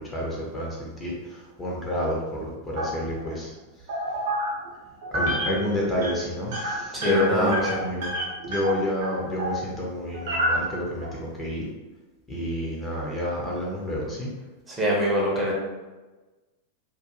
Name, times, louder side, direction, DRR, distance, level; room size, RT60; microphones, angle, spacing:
voice 1, 0.0-3.5 5.1-8.1 8.5-11.7 12.3-14.3, left 1 dB, 15° left, -4 dB, 0.6 m, -29 dB
sound 1, 2.8-3.3 3.9-4.7 5.0-5.6 5.9-6.1 6.5-9.6 10.1-11.1, equal, 55° right, 0.6 m, -28 dB
voice 2, 6.9-7.8 14.7-15.5, equal, 15° right, -4 dB, 0.7 m, -24 dB
2.4 x 2.2 x 2.8 m, 1.2 s
figure-of-eight pair, 90°, 0 cm